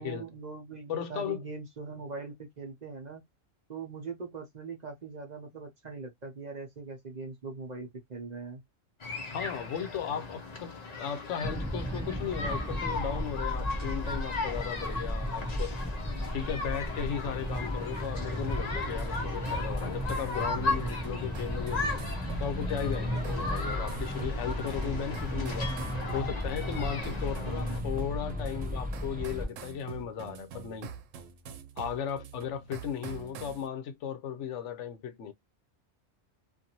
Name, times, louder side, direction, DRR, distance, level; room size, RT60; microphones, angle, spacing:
voice 1, 0.0-3.2 3.7-8.6 27.3-27.8, right 4 dB, 40° right, 0.8 m, -41 dB
voice 2, 0.9-1.4 9.3-15.7 16.3-22.0 22.4-25.7 26.1-30.9 31.8-35.3, left 8 dB, 75° left, 0.9 m, -36 dB
sound 1, 9.0-27.8, left 3 dB, 40° left, 0.7 m, -37 dB
sound 2, 11.4-29.5, equal, 15° right, 0.3 m, -35 dB
sound 3, 18.5-33.7, right 7 dB, 90° right, 0.9 m, -46 dB
2.6 x 2.5 x 2.8 m
omnidirectional pair, 1.3 m